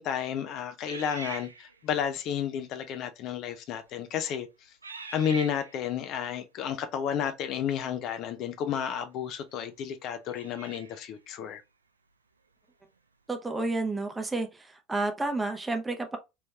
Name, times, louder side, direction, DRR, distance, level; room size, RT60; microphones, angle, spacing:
voice 1, 0.0-4.5 5.1-11.6, left 8 dB, 50° left, 0.4 m, -32 dB
sound 1, 0.8-2.0 2.8-3.0 3.7-4.1 4.8-5.9 8.6-8.7 10.2-11.1, right 4 dB, 85° right, 0.5 m, -43 dB
voice 2, 13.3-16.2, right 2 dB, 15° right, 0.7 m, -31 dB
3.1 x 3.1 x 2.2 m
figure-of-eight pair, 70°, 0 cm